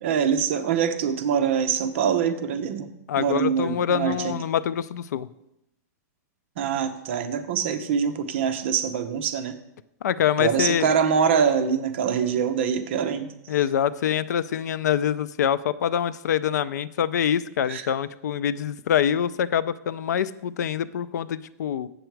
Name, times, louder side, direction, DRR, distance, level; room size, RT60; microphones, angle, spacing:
voice 1, 0.0-2.9 3.2-4.3 6.6-9.5 10.4-13.3 17.7-17.8, right 7 dB, 45° right, 8 dB, 0.7 m, -24 dB
voice 2, 3.1-5.3 10.0-10.9 13.5-21.9, left 9 dB, 85° left, 17 dB, 0.4 m, -25 dB
7.9 x 6.9 x 4.6 m, 0.83 s
supercardioid pair, 180°, 9 cm